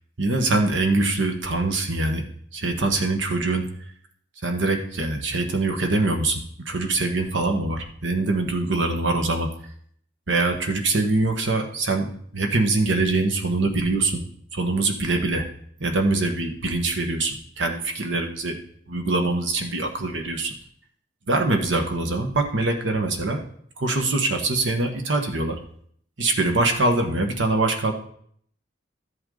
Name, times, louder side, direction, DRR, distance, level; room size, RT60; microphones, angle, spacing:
voice 1, 0.2-2.2 2.5-3.7 4.4-6.4 6.6-9.5 10.3-12.1 12.3-14.2 14.5-15.4 15.8-18.6 18.9-20.5 21.3-23.4 23.8-25.6 26.2-27.9, right 2 dB, 80° right, 4 dB, 1.5 m, -23 dB
13.0 x 8.0 x 3.9 m, 0.64 s
head